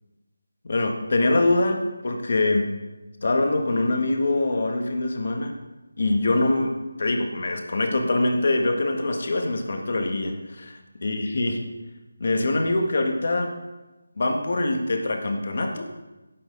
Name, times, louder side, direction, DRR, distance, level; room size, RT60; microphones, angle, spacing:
voice 1, 0.6-2.7 3.2-5.5 6.0-11.6 12.2-13.5 14.2-15.8, left 2 dB, 40° left, 4 dB, 1.6 m, -24 dB
11.5 x 9.2 x 5.4 m, 1.1 s
figure-of-eight pair, 175°, 0 cm